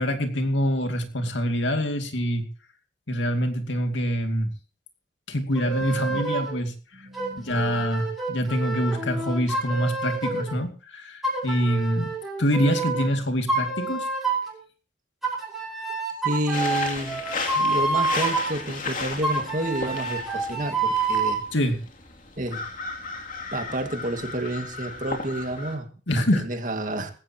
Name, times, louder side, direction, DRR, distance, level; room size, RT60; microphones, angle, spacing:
voice 1, 0.0-2.5 3.1-4.5 5.3-6.7 7.4-12.1 12.4-14.1 21.5-21.8 26.1-26.5, equal, 75° left, 6 dB, 2.5 m, -25 dB
sound 1, 5.6-6.6 7.1-10.6 11.2-13.1 13.5-14.6 15.2-18.5 19.2-21.4, right 3 dB, ahead, 5.4 m, -28 dB
voice 2, 7.0-7.8 16.2-17.2 17.5-21.4 22.4-22.6 23.5-25.9 26.3-27.1, right 1 dB, 45° right, 6 dB, 2.1 m, -30 dB
sound 2, 16.5-25.8, left 4 dB, 45° left, 2.8 m, -35 dB
19.0 x 16.0 x 3.0 m, 0.37 s
head